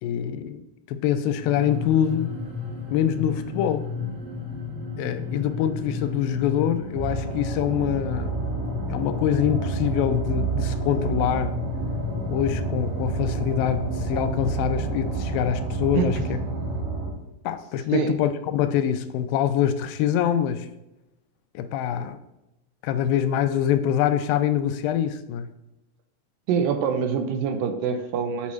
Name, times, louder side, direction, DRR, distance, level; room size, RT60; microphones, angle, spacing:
voice 1, 0.0-2.3 2.9-3.9 5.0-8.5 8.9-11.6 12.3-16.4 17.5-20.7 21.6-22.2 22.8-25.5, left 10 dB, 85° left, 10 dB, 2.3 m, -25 dB
sound 1, 1.4-16.8, left 5 dB, 40° right, 2.0 m, -33 dB
sound 2, 6.9-17.1, right 5 dB, 55° right, 2.6 m, -30 dB
voice 2, 15.9-16.3 17.9-18.2 26.5-28.5, right 6 dB, 80° right, 7 dB, 2.2 m, -25 dB
8.3 x 5.2 x 3.1 m, 0.93 s
omnidirectional pair, 4.1 m